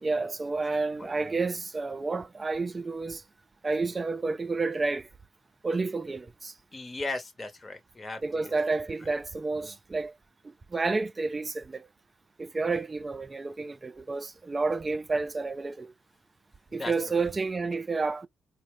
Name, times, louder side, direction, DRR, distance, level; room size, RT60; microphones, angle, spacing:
voice 1, 0.0-3.2 3.6-5.1 5.6-6.5 8.2-10.1 10.7-11.9 12.4-15.9 16.7-18.3, right 3 dB, 25° right, 0.3 m, -30 dB
voice 2, 1.0-1.4 6.7-8.5 9.0-9.1 9.6-9.8 16.7-17.2, left 2 dB, 25° left, 0.8 m, -38 dB
4.1 x 2.1 x 3.0 m
cardioid pair, 90°, 0 cm